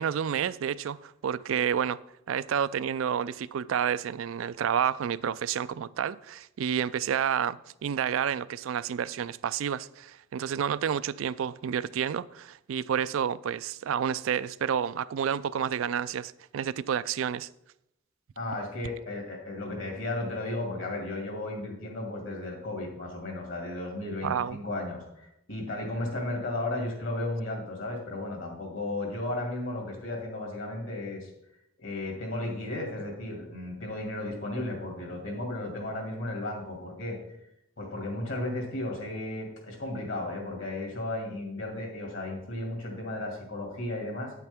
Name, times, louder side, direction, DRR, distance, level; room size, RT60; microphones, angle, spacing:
voice 1, 0.0-2.0 2.3-17.5 24.2-24.6, right 8 dB, 75° right, 0.3 m, -30 dB
voice 2, 18.4-31.3 31.8-37.2 37.8-44.3, left 2 dB, 65° left, 2.4 m, -34 dB
8.9 x 8.3 x 3.5 m
head